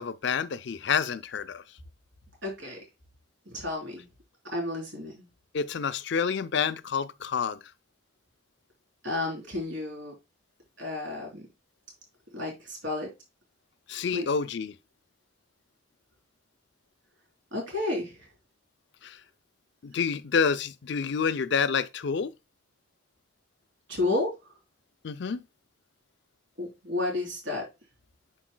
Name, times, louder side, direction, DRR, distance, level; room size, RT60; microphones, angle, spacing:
voice 1, 0.0-1.6 5.5-7.6 13.9-14.7 19.0-19.2 19.8-22.3 25.0-25.4, left 6 dB, 60° left, 0.5 m, -28 dB
voice 2, 2.4-2.8 3.5-4.1 4.5-5.3 9.0-10.1 10.8-11.5 12.3-13.1 14.1-14.3 17.5-18.3 23.9-24.3 26.6-27.6, left 2 dB, 65° right, 3.7 m, -31 dB
10.0 x 4.8 x 2.2 m
head